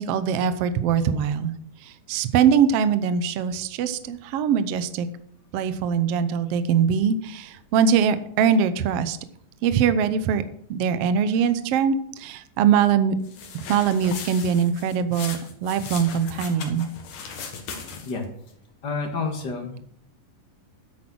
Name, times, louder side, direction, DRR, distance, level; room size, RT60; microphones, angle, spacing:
voice 1, 0.0-1.5 1.8-5.1 5.5-9.2 9.6-10.4 10.7-13.2 13.5-16.9, right 7 dB, 85° right, 12 dB, 1.3 m, -22 dB
sound 1, 13.2-18.3, left 6 dB, 75° left, 3.1 m, -38 dB
voice 2, 18.8-19.8, left 4 dB, 40° left, 3 dB, 1.9 m, -29 dB
10.0 x 8.6 x 6.2 m, 0.68 s
omnidirectional pair, 3.8 m